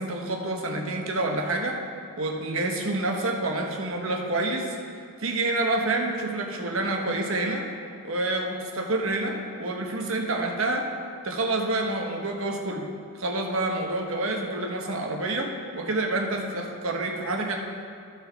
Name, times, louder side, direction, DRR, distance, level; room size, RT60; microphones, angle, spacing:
voice 1, 0.0-1.8 2.2-4.8 5.2-7.7 8.0-10.9 11.2-12.9 13.2-17.6, right 2 dB, 65° right, 2 dB, 1.0 m, -28 dB
14.0 x 5.8 x 3.5 m, 2.4 s
head